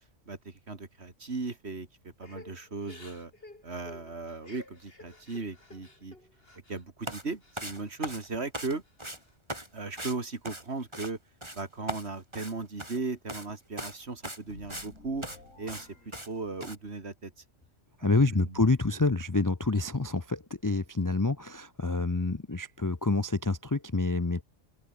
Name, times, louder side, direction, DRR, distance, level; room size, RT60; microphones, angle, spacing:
voice 1, 0.3-1.9 2.2-3.3 3.6-6.1 6.7-8.8 9.7-11.2 11.5-15.3 15.6-15.9 16.3-17.3 18.0-18.6, right 3 dB, 55° right, 2.8 m, -37 dB
Crying sobbing / Breathing, 2.2-6.8 7.2-8.2 8.6-9.3, left 2 dB, 50° left, 4.4 m, -52 dB
sound 1, 7.0-7.2 7.6-8.7 9.0-9.2 9.5-9.7 10.0-10.2 10.4-11.1 11.4-11.6 11.9-13.0 13.3-13.5 13.8-14.0 14.2-14.9 15.2-15.4 15.7-16.3 16.6-16.8, right 1 dB, 20° right, 5.6 m, -39 dB
sound 2, 14.4-17.0, left 2 dB, 85° left, 5.7 m, -53 dB
voice 2, 18.0-24.4, left 3 dB, 20° left, 0.6 m, -27 dB
omnidirectional pair, 1.3 m